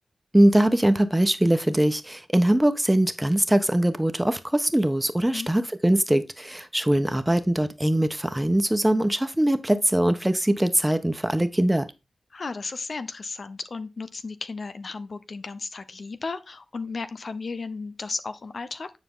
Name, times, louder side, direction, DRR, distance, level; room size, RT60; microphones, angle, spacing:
voice 1, 0.3-11.9, right 1 dB, 15° right, 1.2 m, -22 dB
voice 2, 12.3-18.9, left 4 dB, 65° left, 0.8 m, -34 dB
9.6 x 4.8 x 3.8 m
cardioid pair, 45°, 0 cm